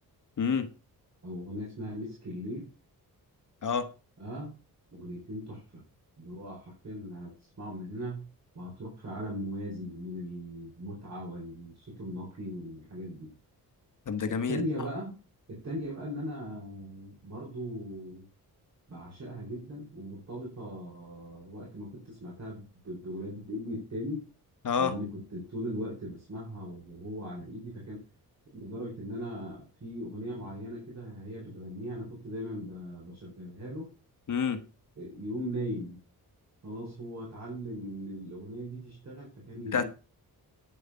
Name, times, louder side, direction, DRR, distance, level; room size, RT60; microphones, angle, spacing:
voice 1, 0.4-0.7 3.6-3.9 14.1-14.6 24.6-24.9 34.3-34.6 39.7-39.9, left 6 dB, 50° left, 1.3 m, -28 dB
voice 2, 1.2-2.7 4.2-4.5 4.9-5.8 6.2-8.3 8.5-13.3 14.3-15.2 15.5-18.2 18.9-24.3 24.8-28.0 28.5-33.9 35.0-36.0 36.6-39.9, equal, 45° right, 4.8 m, -39 dB
9.9 x 7.6 x 5.7 m
wide cardioid pair, 140°, 38 cm